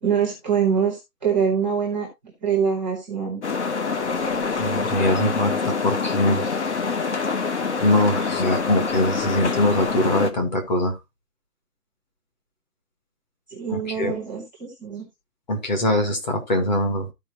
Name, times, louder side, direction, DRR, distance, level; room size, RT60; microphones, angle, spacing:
voice 1, 0.0-2.1 2.4-3.4 13.5-15.1, right 7 dB, 5° right, 0.8 m, -24 dB
sound 1, 3.4-10.3, left 4 dB, 45° left, 1.1 m, -25 dB
voice 2, 4.6-6.4 7.3-7.4 7.8-11.0 13.7-14.2 15.5-17.1, left 1 dB, 25° left, 1.5 m, -22 dB
14.0 x 4.8 x 2.9 m
hypercardioid pair, 180°, 49 cm